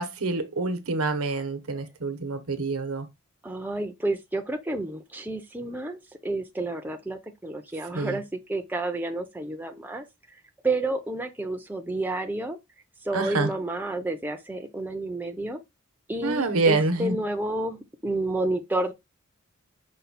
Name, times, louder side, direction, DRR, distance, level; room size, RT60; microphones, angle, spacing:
voice 1, 0.0-3.1 7.9-8.2 13.1-13.5 16.2-17.2, right 3 dB, 85° right, 0.9 m, -26 dB
voice 2, 3.4-10.0 10.3-12.6 13.0-15.6 16.1-18.9, right 2 dB, 10° right, 0.5 m, -30 dB
5.4 x 2.2 x 4.1 m
head